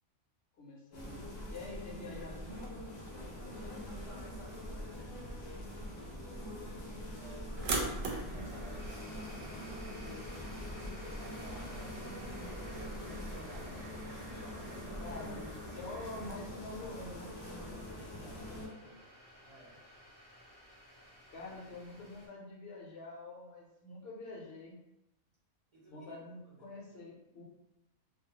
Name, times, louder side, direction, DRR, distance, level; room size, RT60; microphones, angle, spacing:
voice 1, 0.6-1.2 1.5-2.8 6.9-7.0 15.0-17.3 21.3-24.8 25.9-27.4, left 2 dB, 55° left, -3 dB, 0.8 m, -46 dB
sound 1, 0.9-18.7, left 1 dB, 90° left, 0.3 m, -44 dB
voice 2, 3.8-10.5 11.1-15.2 17.6-19.1 19.4-19.8 25.7-26.2 26.4-26.7, right 1 dB, 40° right, -8 dB, 0.5 m, -56 dB
sound 2, 7.6-16.3, right 3 dB, 75° right, 1.0 m, -44 dB
sound 3, 8.8-22.3, left 1 dB, 20° left, 0.5 m, -55 dB
2.6 x 2.1 x 2.8 m, 0.88 s
omnidirectional pair, 1.5 m